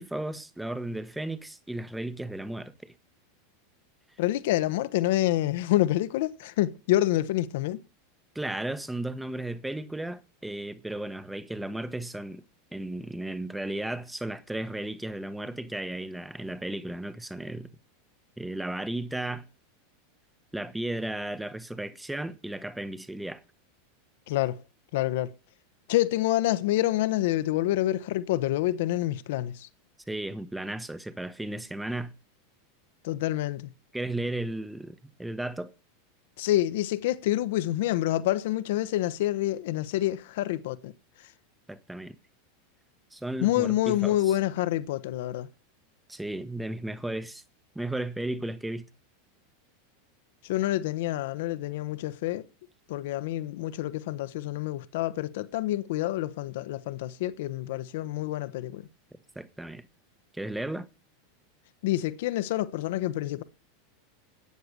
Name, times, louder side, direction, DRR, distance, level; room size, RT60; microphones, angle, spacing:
voice 1, 0.0-2.9 8.3-12.4 12.7-17.7 18.4-19.5 20.5-23.4 30.1-32.1 33.9-35.7 41.7-42.2 43.1-44.3 46.1-47.4 47.7-48.9 59.3-59.9 60.3-60.9, right 1 dB, 5° right, 1.2 m, -34 dB
voice 2, 4.2-7.8 24.3-24.6 24.9-25.3 25.9-29.7 33.0-33.7 36.4-40.9 43.4-45.5 50.4-52.4 52.9-58.9 61.8-63.4, left 15 dB, 60° left, 1.2 m, -27 dB
14.0 x 9.5 x 6.6 m
figure-of-eight pair, 85°, 0 cm